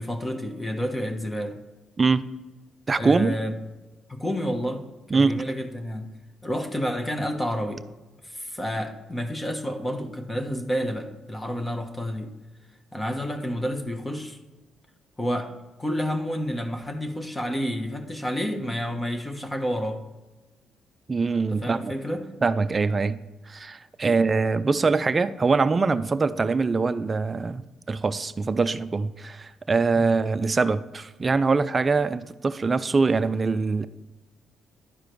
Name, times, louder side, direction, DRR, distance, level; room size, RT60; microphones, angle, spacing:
voice 1, 0.0-1.6 3.0-3.6 4.1-4.8 5.1-6.1 6.4-7.8 8.2-12.3 12.9-14.4 15.2-15.5 15.8-20.0 21.5-22.3 24.0-24.2 29.9-30.1, equal, 15° left, 1.1 m, -29 dB
voice 2, 2.9-3.4 5.1-5.4 21.1-21.9 22.4-23.2 23.5-27.6 27.9-33.9, right 4 dB, 30° right, 0.5 m, -23 dB
11.0 x 4.9 x 4.6 m
cardioid pair, 90°, 0 cm